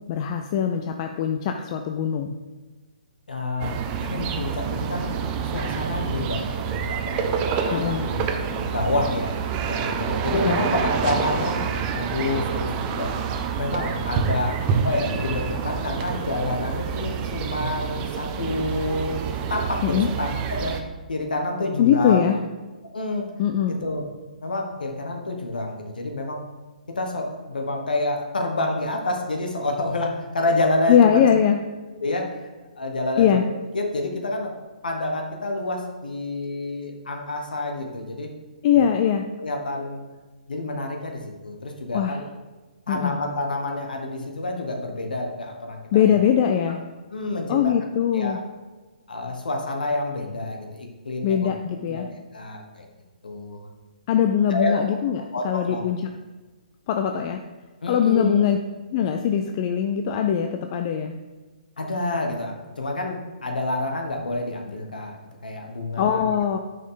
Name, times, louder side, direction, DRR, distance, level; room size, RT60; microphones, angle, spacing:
voice 1, 0.1-2.4 7.7-8.1 10.3-10.6 19.8-20.1 21.8-22.4 23.4-23.7 30.9-31.6 33.2-33.4 38.6-39.3 41.9-42.2 42.9-43.2 45.9-46.8 47.5-48.4 51.2-52.1 54.1-56.0 56.9-57.4 57.9-58.6 58.9-61.1 66.0-66.6, left 9 dB, 35° left, 5 dB, 0.5 m, -21 dB
voice 2, 3.3-5.1 5.5-9.3 9.7-11.6 11.9-13.1 13.6-14.6 14.8-20.8 21.1-22.3 22.9-23.3 23.7-24.0 24.4-26.4 26.9-31.3 32.0-32.5 32.8-33.4 33.7-34.6 34.8-38.3 39.4-40.0 40.5-42.3 42.9-46.2 46.7-46.8 47.1-47.7 48.1-48.4 49.1-51.5 51.9-52.9 53.2-53.7 54.5-54.8 55.3-55.8 57.8-58.4 61.8-66.3, left 2 dB, 80° left, 2 dB, 1.3 m, -28 dB
sound 1, 3.6-20.8, right 6 dB, 25° right, 0.6 m, -27 dB
9.3 x 5.5 x 3.9 m, 1.2 s
hypercardioid pair, 140°, 5 cm